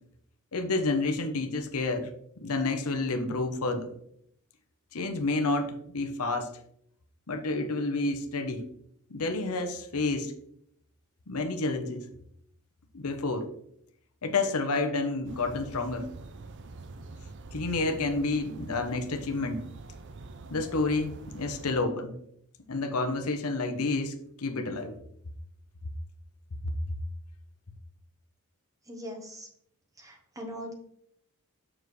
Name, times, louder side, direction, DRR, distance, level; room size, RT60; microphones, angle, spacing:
voice 1, 0.5-2.1 2.4-3.9 4.9-6.5 7.3-8.6 9.1-10.3 11.3-12.1 12.9-13.5 14.2-16.1 17.5-19.6 20.5-22.1 22.7-25.0 26.6-27.0, left 3 dB, 75° left, 6 dB, 0.9 m, -29 dB
sound 1, 15.2-21.7, right 3 dB, 55° right, 0.5 m, -45 dB
voice 2, 28.8-29.5 30.0-30.7, equal, 15° right, 3 dB, 1.1 m, -41 dB
7.2 x 6.2 x 3.2 m, 0.70 s
head